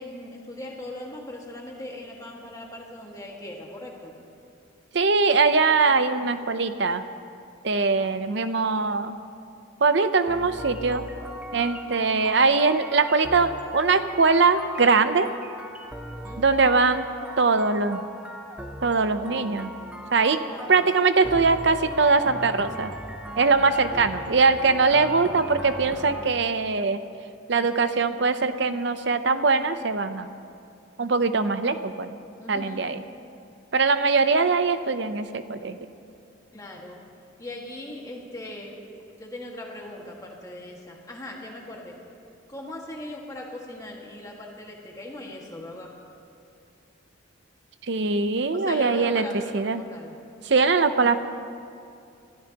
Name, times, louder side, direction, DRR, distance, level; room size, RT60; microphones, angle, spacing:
voice 1, 0.0-4.2 7.9-8.1 16.2-16.5 20.5-20.8 32.4-32.9 36.5-37.0 37.4-38.8 39.2-42.0 42.5-45.9 48.5-50.2, left 1 dB, 15° left, -2 dB, 1.8 m, -39 dB
voice 2, 4.9-7.0 7.6-9.2 9.8-11.0 11.5-15.3 16.4-17.0 17.4-18.0 18.8-19.7 20.1-20.4 20.7-22.9 23.4-27.0 27.5-30.3 31.0-32.1 32.5-33.0 33.7-35.8 47.9-49.2 49.5-49.8 50.4-51.2, right 4 dB, 60° right, 10 dB, 0.7 m, -22 dB
sound 1, 10.3-26.3, equal, 5° right, 0.7 m, -39 dB
25.5 x 15.5 x 2.9 m, 2.5 s
head